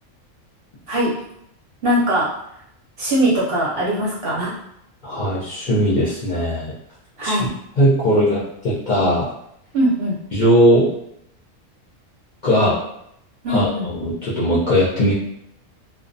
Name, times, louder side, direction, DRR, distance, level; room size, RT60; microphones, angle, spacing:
voice 1, 1.8-2.3 3.0-4.5 7.2-7.5 9.7-10.2 13.4-13.9, right 1 dB, 60° right, -5 dB, 0.7 m, -20 dB
voice 2, 5.0-6.7 7.2-7.4 7.8-9.3 10.3-10.9 12.4-12.8 13.5-15.1, equal, 55° left, -9 dB, 0.5 m, -18 dB
2.3 x 2.1 x 2.5 m, 0.76 s
omnidirectional pair, 1.4 m